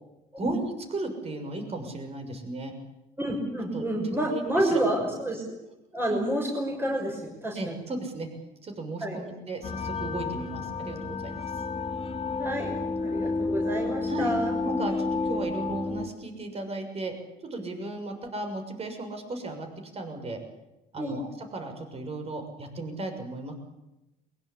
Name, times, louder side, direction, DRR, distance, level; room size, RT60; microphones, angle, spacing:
voice 1, 0.4-2.7 3.7-4.8 7.6-8.3 8.6-11.5 14.1-14.3 14.6-17.1 17.4-19.7 19.9-20.4 20.9-23.5, right 2 dB, 35° right, 5 dB, 6.5 m, -35 dB
voice 2, 3.2-5.4 5.9-7.8 9.0-9.2 12.4-12.7 13.0-14.5 21.0-21.1, right 1 dB, 15° right, 0 dB, 6.2 m, -29 dB
Low Slow Metal, 9.6-16.1, left 3 dB, 35° left, 3.0 m, -31 dB
23.0 x 22.0 x 8.7 m, 0.95 s
cardioid pair, 110°, 17 cm